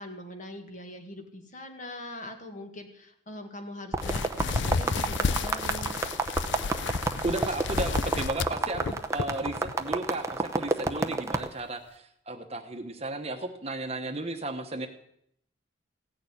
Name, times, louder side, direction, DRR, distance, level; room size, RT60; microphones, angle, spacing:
voice 1, 0.0-6.0, left 1 dB, 40° left, 5 dB, 1.9 m, -42 dB
sound 1, 3.9-11.5, right 3 dB, 15° right, 0.7 m, -30 dB
sound 2, 4.0-9.7 10.1-10.4 10.9-11.0 11.5-11.6, left 4 dB, 60° left, 0.5 m, -31 dB
voice 2, 7.2-14.9, right 2 dB, 30° right, 6 dB, 1.1 m, -34 dB
16.0 x 6.8 x 9.8 m, 0.73 s
head